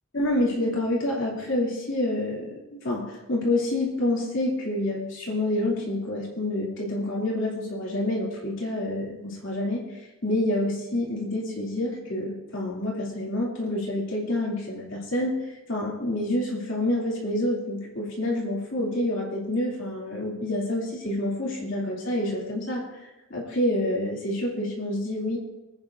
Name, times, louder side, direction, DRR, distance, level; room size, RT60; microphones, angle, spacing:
voice 1, 0.1-9.9 10.2-23.0 23.3-25.4, left 1 dB, 65° left, -4 dB, 3.0 m, -28 dB
26.5 x 9.0 x 2.7 m, 1.1 s
head